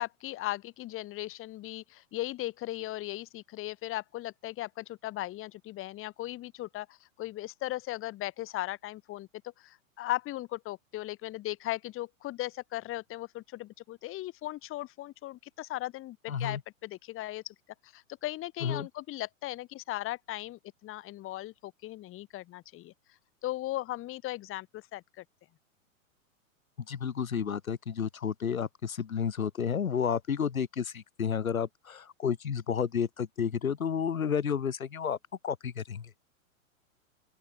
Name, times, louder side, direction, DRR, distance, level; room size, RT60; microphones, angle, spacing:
voice 1, 0.0-9.3 9.6-17.5 17.8-22.9 23.4-25.2, left 16 dB, 30° left, 5.1 m, -37 dB
voice 2, 16.3-16.6 18.6-18.9 26.9-35.2 35.4-36.1, left 7 dB, 80° left, 5.2 m, -31 dB
open air
hypercardioid pair, 115°, 41 cm